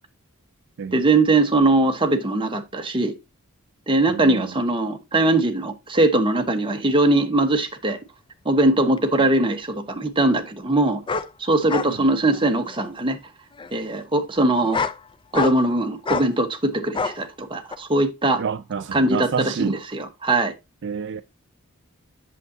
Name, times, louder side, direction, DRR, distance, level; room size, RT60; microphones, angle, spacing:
voice 1, 0.9-3.1 3.9-8.0 8.4-11.0 11.4-13.2 13.7-14.8 15.3-18.4 18.9-19.3 19.7-20.5, right 2 dB, 25° right, 1.1 m, -21 dB
voice 2, 4.1-4.5 11.9-12.1 18.4-19.8 20.8-21.2, right 6 dB, 55° right, 0.4 m, -29 dB
sound 1, 9.0-9.1 11.1-11.3 11.7-11.9 12.3-12.8 13.6-13.7 14.5-15.0 15.3-15.7 16.1-16.3 16.9-17.2 17.7-17.8, left 4 dB, 20° left, 0.5 m, -26 dB
8.3 x 7.1 x 2.7 m
head